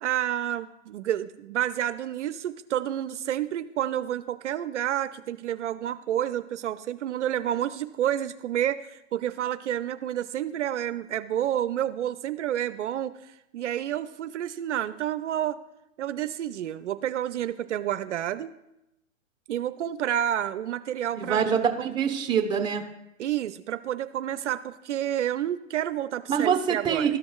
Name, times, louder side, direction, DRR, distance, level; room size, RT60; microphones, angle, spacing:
voice 1, 0.0-15.6 16.0-18.5 19.5-21.7 23.2-27.1, right 11 dB, 65° right, 12 dB, 0.5 m, -29 dB
voice 2, 21.1-22.8 26.3-27.2, right 7 dB, 10° right, 3 dB, 0.8 m, -25 dB
13.5 x 5.2 x 2.3 m, 0.88 s
hypercardioid pair, 130°, 38 cm